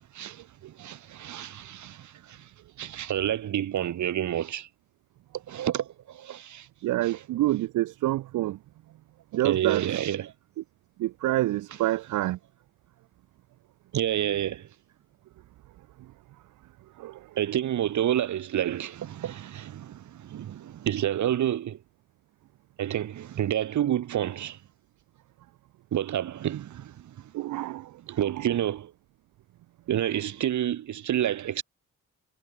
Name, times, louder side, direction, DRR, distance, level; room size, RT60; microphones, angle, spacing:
voice 1, 0.8-2.5 2.8-4.7 5.5-6.7 7.0-7.2 9.4-10.3 13.9-14.7 17.4-21.8 22.8-24.6 25.9-27.3 28.1-28.9 29.9-31.6, right 11 dB, 70° right, 8.0 m, -29 dB
voice 2, 6.8-8.6 9.3-9.8 11.0-12.4 17.0-17.3 27.3-28.4, right 16 dB, 85° right, 1.8 m, -28 dB
cardioid pair, 90°, 30 cm